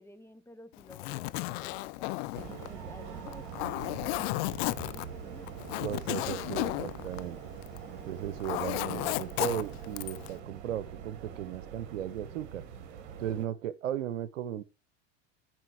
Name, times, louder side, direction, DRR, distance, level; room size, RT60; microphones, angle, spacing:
voice 1, 0.0-5.8, left 2 dB, 5° left, 0.7 m, -53 dB
Zipper (clothing), 0.8-7.9 8.2-10.3, left 22 dB, 55° left, 0.5 m, -34 dB
sound 1, 2.3-13.5, right 8 dB, 60° right, 1.8 m, -44 dB
voice 2, 5.8-7.4 8.1-12.6 13.2-14.6, right 10 dB, 80° right, 0.8 m, -36 dB
7.5 x 4.9 x 4.7 m
hypercardioid pair, 90°, 37 cm